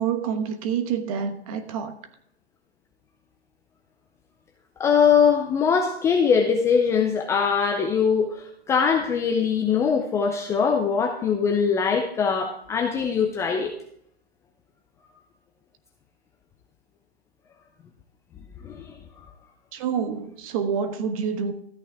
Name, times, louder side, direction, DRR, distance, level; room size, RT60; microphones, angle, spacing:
voice 1, 0.0-2.0 19.7-21.5, right 7 dB, 35° right, 1.1 m, -27 dB
voice 2, 4.8-13.7 18.6-19.0, left 6 dB, 10° left, 0.5 m, -22 dB
13.5 x 9.0 x 3.4 m
hypercardioid pair, 135°, 32 cm